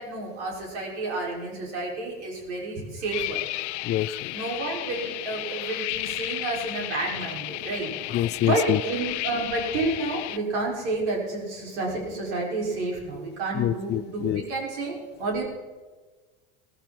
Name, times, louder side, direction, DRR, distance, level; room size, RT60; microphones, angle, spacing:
voice 1, 0.0-3.4 4.3-7.9 8.4-15.4, right 2 dB, 75° right, -2 dB, 6.3 m, -30 dB
sound 1, 3.1-10.4, left 18 dB, 80° left, 0.6 m, -33 dB
voice 2, 3.8-4.3 8.1-8.8 13.5-14.4, left 13 dB, 30° left, 17 dB, 0.4 m, -26 dB
18.0 x 14.5 x 4.6 m, 1.3 s
supercardioid pair, 115°, 34 cm